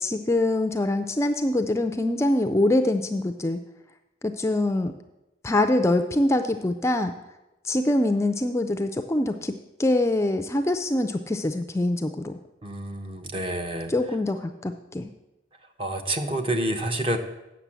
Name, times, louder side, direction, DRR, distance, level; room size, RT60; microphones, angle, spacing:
voice 1, 0.0-3.6 4.2-4.9 5.4-7.1 7.6-12.3 13.9-15.1, left 1 dB, 15° left, 7 dB, 0.4 m, -24 dB
voice 2, 12.6-13.9 15.8-17.2, right 1 dB, 30° right, 6 dB, 0.9 m, -28 dB
8.1 x 6.2 x 7.4 m, 0.97 s
head